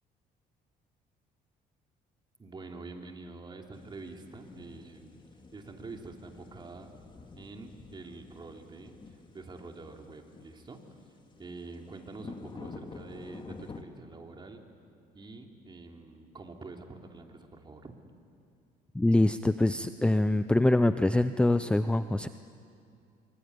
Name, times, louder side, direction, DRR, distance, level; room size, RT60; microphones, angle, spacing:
voice 1, 2.4-5.2 5.5-6.9 7.4-8.9 9.3-11.0 11.3-14.6 15.1-18.0, right 3 dB, 25° right, 3 dB, 3.1 m, -46 dB
sound 1, 3.7-13.8, left 4 dB, 30° left, 2.2 m, -49 dB
voice 2, 18.9-22.3, left 1 dB, 5° left, 11 dB, 0.6 m, -24 dB
25.5 x 24.0 x 9.6 m, 2.4 s
cardioid pair, 110°, 17 cm